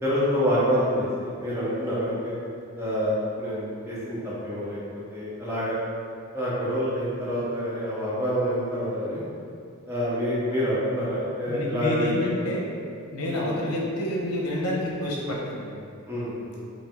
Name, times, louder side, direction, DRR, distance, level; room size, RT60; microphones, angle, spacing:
voice 1, 0.0-2.3 2.8-4.2 4.4-4.8 5.1-5.8 6.3-9.2 9.9-12.1 12.4-12.6 13.3-13.5 16.1-16.6, equal, 10° right, -8 dB, 0.8 m, -27 dB
voice 2, 11.5-12.7 13.1-15.8, left 1 dB, 90° left, -3 dB, 0.8 m, -28 dB
5.0 x 2.0 x 3.5 m, 2.3 s
head